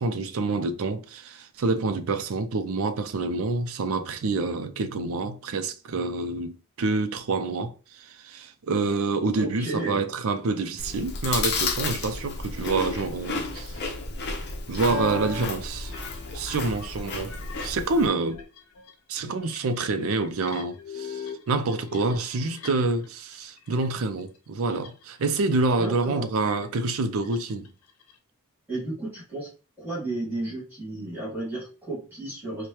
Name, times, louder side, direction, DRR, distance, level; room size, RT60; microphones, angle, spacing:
voice 1, 0.0-13.8 14.7-15.9 16.3-18.4 19.1-27.7, right 3 dB, 65° right, 0.5 m, -27 dB
voice 2, 9.4-10.1 25.8-26.3 28.7-29.5 29.8-32.7, right 2 dB, 10° right, 1.9 m, -33 dB
Chewing mastication, 10.8-18.1, left 3 dB, 50° left, 0.7 m, -32 dB
sound 1, 12.0-12.1 14.7-15.5 15.8-23.1 23.3-23.9 24.2-25.2 25.6-25.9 26.4-28.1, left 4 dB, 85° left, 0.7 m, -40 dB
4.6 x 2.2 x 2.9 m
head